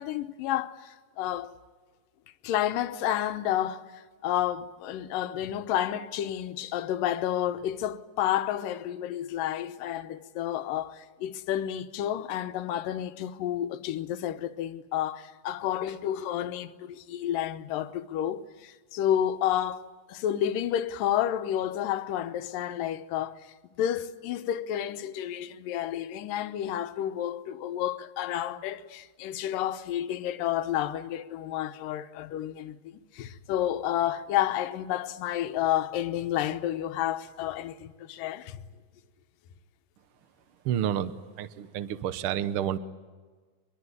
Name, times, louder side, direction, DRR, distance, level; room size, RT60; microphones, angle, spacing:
voice 1, 0.0-1.5 2.4-23.5 23.8-38.6, left 11 dB, 80° left, 2.6 m, -30 dB
voice 2, 40.6-42.8, right 10 dB, 80° right, 1.2 m, -30 dB
24.0 x 22.5 x 9.7 m
omnidirectional pair, 3.9 m